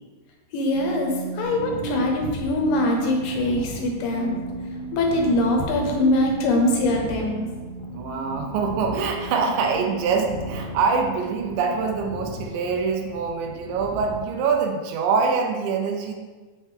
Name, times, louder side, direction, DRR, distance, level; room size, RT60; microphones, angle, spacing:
voice 1, 0.5-4.4 4.9-7.5, left 1 dB, 85° left, 1 dB, 2.8 m, -23 dB
sound 1, 0.7-12.9, right 3 dB, 55° right, 2.1 m, -35 dB
sound 2, 1.4-14.2, left 3 dB, 70° left, 1.5 m, -39 dB
voice 2, 8.0-16.1, right 5 dB, 90° right, 3 dB, 2.6 m, -24 dB
7.5 x 5.9 x 3.4 m, 1.3 s
omnidirectional pair, 3.8 m